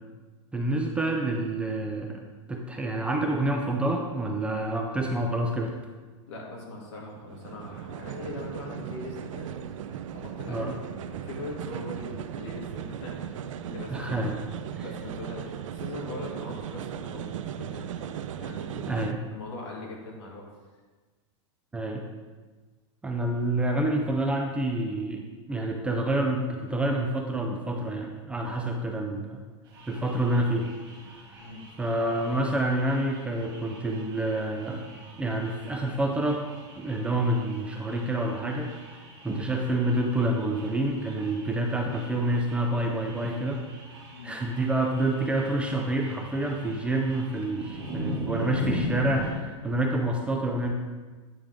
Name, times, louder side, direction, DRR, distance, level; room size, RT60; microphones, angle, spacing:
voice 1, 0.5-2.2 2.5-5.7 10.5-10.7 13.9-14.4 14.8-14.9 18.9-19.2 21.7-22.0 23.0-29.4 29.9-30.7 31.1-31.5 31.8-36.4 36.8-43.6 44.2-50.7, right 1 dB, 5° right, 1 dB, 0.4 m, -28 dB
voice 2, 6.3-18.9 19.3-20.5 31.4-31.6 44.1-44.3 49.7-49.9, left 2 dB, 65° left, -2 dB, 2.3 m, -41 dB
sound 1, 7.0-19.1, right 9 dB, 85° right, 0.5 m, -37 dB
sound 2, 29.7-49.3, equal, 25° right, 2.4 m, -40 dB
9.3 x 5.0 x 3.6 m, 1.3 s
supercardioid pair, 155°, 16 cm